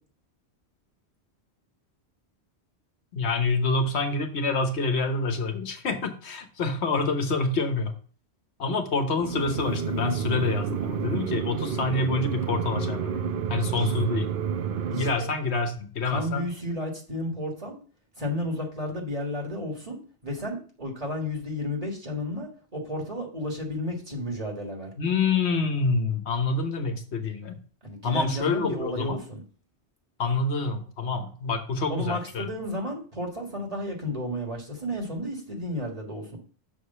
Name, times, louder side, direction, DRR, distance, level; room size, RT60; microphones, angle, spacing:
voice 1, 3.1-7.9 8.6-13.2 13.5-14.3 14.9-16.4 25.0-27.6 28.0-29.2 30.2-32.5, left 3 dB, 80° left, 6 dB, 1.3 m, -27 dB
sound 1, 9.2-15.1, right 7 dB, 60° right, 0.7 m, -29 dB
voice 2, 14.9-15.3 16.0-17.8 18.2-24.9 27.8-29.4 31.9-36.4, left 1 dB, 35° right, 1 dB, 1.9 m, -32 dB
6.5 x 4.9 x 5.5 m, 0.42 s
omnidirectional pair, 1.1 m